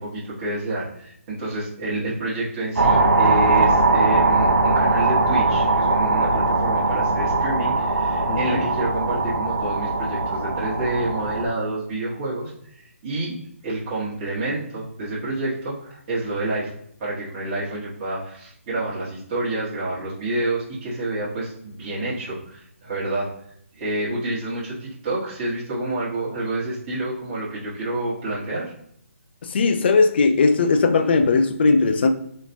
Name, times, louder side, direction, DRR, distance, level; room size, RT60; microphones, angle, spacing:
voice 1, 0.0-13.3 13.6-16.7 17.0-23.3 23.7-28.7, right 2 dB, 25° right, -9 dB, 1.4 m, -28 dB
sound 1, 2.8-11.5, right 3 dB, 90° right, 0.8 m, -20 dB
voice 2, 8.3-8.6 29.5-32.1, left 4 dB, 45° left, 8 dB, 0.5 m, -18 dB
3.1 x 3.1 x 2.6 m, 0.69 s
hypercardioid pair, 155°, 8 cm